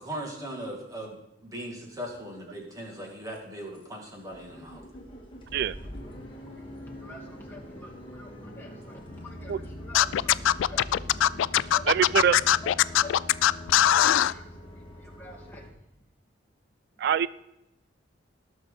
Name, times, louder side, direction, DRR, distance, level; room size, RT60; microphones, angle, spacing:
voice 1, 0.0-4.8, right 1 dB, 20° right, 0 dB, 2.4 m, -39 dB
sound 1, 2.1-2.2 2.6-3.0 3.3-3.4 3.7-3.9 4.1-15.7, equal, 30° left, 2.1 m, -45 dB
voice 2, 5.7-13.1 13.7-14.4 14.7-15.8, left 1 dB, 10° left, -3 dB, 2.2 m, -47 dB
sound 2, 9.1-15.7, left 2 dB, 65° left, 1.3 m, -45 dB
Scratching (performance technique), 9.9-14.3, left 11 dB, 85° left, 0.3 m, -21 dB
voice 3, 11.9-12.4 17.0-17.3, right 8 dB, 60° right, 18 dB, 0.3 m, -23 dB
18.5 x 6.2 x 4.1 m, 0.85 s
head